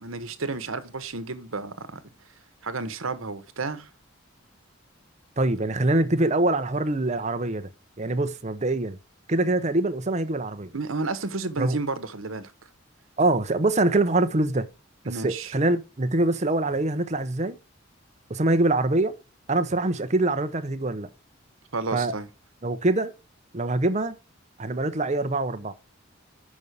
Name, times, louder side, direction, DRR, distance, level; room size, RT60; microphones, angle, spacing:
voice 1, 0.0-2.0 2.6-3.9 10.7-12.5 15.1-15.5 21.7-22.3, right 3 dB, 80° right, 1.1 m, -31 dB
voice 2, 5.4-7.7 8.0-9.0 9.3-10.7 11.6-11.8 13.2-14.7 15.2-17.6 18.3-19.2 19.5-21.1 21.9-22.1 22.6-23.1 23.5-24.1 24.6-25.7, right 2 dB, 35° right, 0.8 m, -24 dB
6.2 x 5.4 x 6.7 m
head